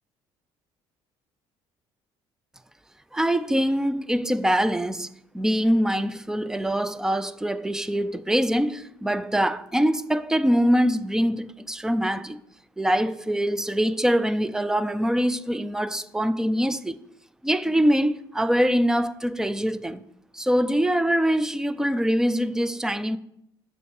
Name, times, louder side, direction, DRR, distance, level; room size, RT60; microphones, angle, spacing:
voice 1, 3.1-5.1 5.3-12.4 12.8-17.0 17.4-20.0 20.3-23.2, equal, 5° right, 0.3 m, -23 dB
6.8 x 5.5 x 7.0 m
cardioid pair, 130°, 11 cm